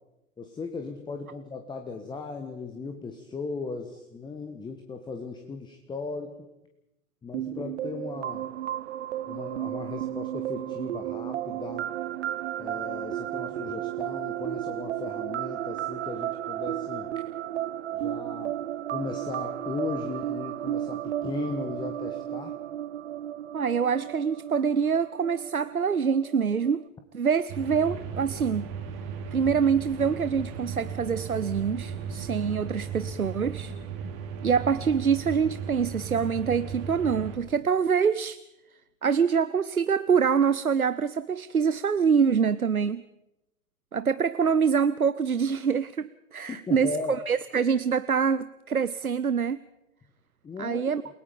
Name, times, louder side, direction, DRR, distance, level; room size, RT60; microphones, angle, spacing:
voice 1, 0.4-6.4 7.2-8.4 9.3-11.9 12.6-17.1 17.9-18.6 18.9-22.5 46.5-47.2 50.4-50.8, left 4 dB, 10° left, 6 dB, 1.3 m, -37 dB
sound 1, 7.3-26.9, right 12 dB, 55° right, 0.8 m, -34 dB
voice 2, 23.5-26.8 27.1-28.7 29.3-33.7 34.4-38.4 39.0-43.0 43.9-49.6 50.6-51.0, right 6 dB, 90° right, 15 dB, 0.7 m, -25 dB
sound 2, 27.5-37.4, right 6 dB, 35° right, 3.0 m, -36 dB
28.5 x 18.0 x 5.3 m, 0.93 s
figure-of-eight pair, 105°, 42 cm